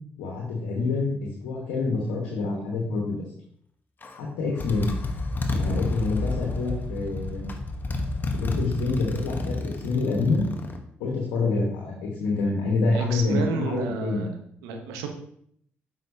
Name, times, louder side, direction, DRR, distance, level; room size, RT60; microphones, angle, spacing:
voice 1, 0.2-3.2 4.2-4.9 5.5-7.5 8.3-10.4 11.0-14.3, left 3 dB, 85° left, -1 dB, 1.3 m, -27 dB
Motorcycle, 4.0-4.2 4.6-10.8, left 2 dB, 40° left, 1.1 m, -30 dB
voice 2, 12.9-14.3 14.6-15.1, right 5 dB, 90° right, 4 dB, 0.9 m, -31 dB
7.7 x 5.7 x 2.8 m, 0.67 s
hypercardioid pair, 50°, 5 cm